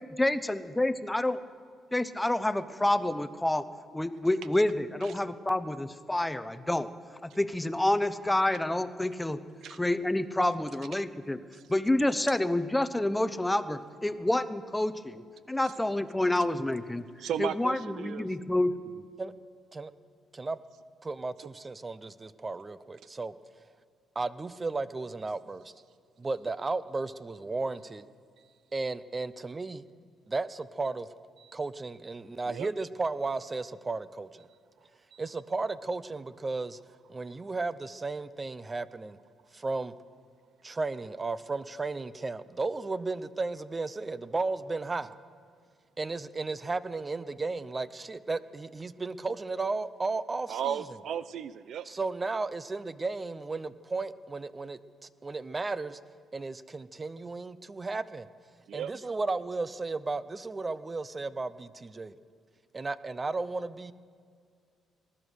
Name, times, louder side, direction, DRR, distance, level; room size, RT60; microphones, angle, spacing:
voice 1, 0.2-1.4 1.9-3.6 3.9-6.9 7.2-9.4 9.7-11.4 11.7-17.0 17.4-18.7, left 1 dB, 10° left, 12 dB, 0.7 m, -28 dB
voice 2, 17.2-18.2 31.4-31.5 32.5-32.7 35.1-35.2 50.5-51.9 58.7-58.9, right 9 dB, 70° right, 15 dB, 0.5 m, -35 dB
voice 3, 21.0-23.3 24.2-25.7 26.2-28.0 28.7-29.8 30.3-31.1 31.5-34.5 35.2-36.8 37.1-39.2 39.5-39.9 40.6-45.1 46.0-50.8 51.9-56.0 56.3-58.3 58.7-62.1 62.7-63.9, right 3 dB, 25° right, 16 dB, 0.6 m, -34 dB
20.0 x 11.0 x 6.4 m, 2.2 s
cardioid pair, 90°, 0 cm